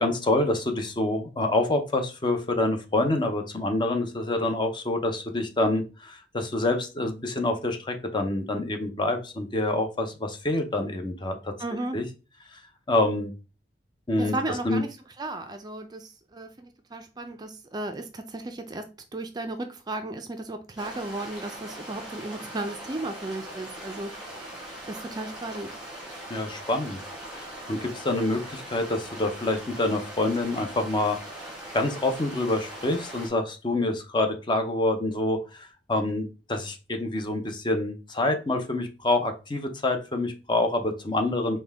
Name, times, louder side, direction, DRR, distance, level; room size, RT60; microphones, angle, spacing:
voice 1, 0.0-11.5 11.9-12.0 12.5-12.6 12.9-13.3 14.1-14.3 14.6-14.8 26.3-27.0 27.3-31.2 31.7-41.6, left 2 dB, 25° left, 6 dB, 0.6 m, -27 dB
voice 2, 11.6-12.0 14.2-25.8, right 2 dB, 25° right, 7 dB, 0.4 m, -35 dB
sound 1, 20.8-33.3, right 1 dB, 5° right, 1.5 m, -41 dB
5.2 x 2.2 x 3.4 m, 0.32 s
head